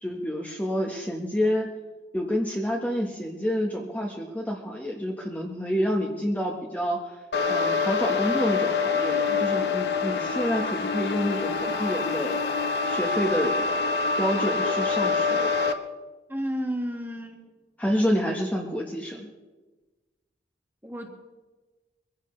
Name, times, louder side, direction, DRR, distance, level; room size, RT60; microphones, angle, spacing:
voice 1, 0.0-1.8 2.1-7.2 7.5-12.4 12.8-13.7 14.2-15.5 17.8-19.3, equal, 10° left, -1 dB, 1.2 m, -28 dB
sound 1, 7.3-15.7, left 4 dB, 65° left, 1.1 m, -26 dB
voice 2, 16.3-17.5 20.8-21.1, equal, 10° right, 2 dB, 1.7 m, -31 dB
24.0 x 15.5 x 3.3 m, 1.2 s
head